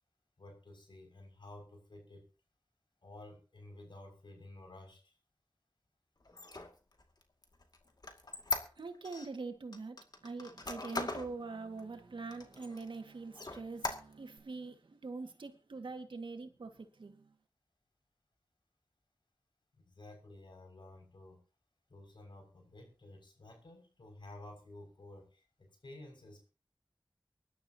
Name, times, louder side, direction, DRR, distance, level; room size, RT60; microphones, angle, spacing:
voice 1, 0.4-2.3 3.0-5.2 19.7-21.4 21.9-26.5, left 2 dB, 75° left, 6.2 m, -53 dB
Squeak, 6.3-9.3 9.7-11.3 11.8-11.9 12.3-13.0 13.3-14.4, left 2 dB, 55° left, 2.2 m, -40 dB
voice 2, 8.8-17.4, right 3 dB, 90° right, 2.0 m, -44 dB
24.0 x 11.5 x 2.9 m
wide cardioid pair, 50°, 8 cm